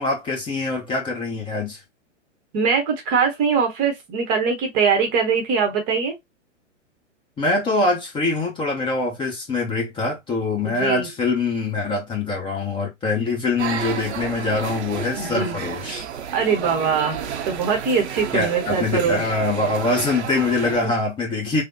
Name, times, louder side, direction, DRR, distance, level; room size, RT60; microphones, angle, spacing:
voice 1, 0.0-1.8 7.4-16.0 18.3-21.6, left 3 dB, 15° left, 0.8 m, -24 dB
voice 2, 2.5-6.2 10.6-11.1 15.2-15.6 16.3-19.3 20.8-20.9, right 6 dB, 30° right, 0.8 m, -22 dB
sound 1, 13.6-20.8, right 8 dB, 60° right, 0.6 m, -31 dB
3.3 x 2.0 x 2.6 m
figure-of-eight pair, 110°, 38 cm